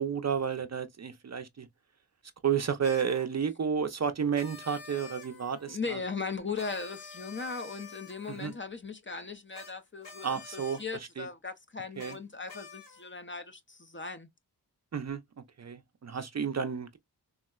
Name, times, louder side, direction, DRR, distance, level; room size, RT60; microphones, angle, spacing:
voice 1, 0.0-1.7 2.4-6.0 8.4-8.5 10.2-10.8 11.2-11.3 12.0-12.1 14.9-15.2 15.6-17.0, right 7 dB, 40° right, 0.4 m, -31 dB
sound 1, 2.8-3.3 4.3-5.8 6.5-8.6 9.5-9.7 10.0-10.8 12.0-12.2 12.5-13.1, left 5 dB, 75° left, 1.1 m, -48 dB
voice 2, 5.7-14.3, left 4 dB, 30° left, 0.4 m, -38 dB
3.6 x 2.0 x 2.2 m
wide cardioid pair, 65°, 43 cm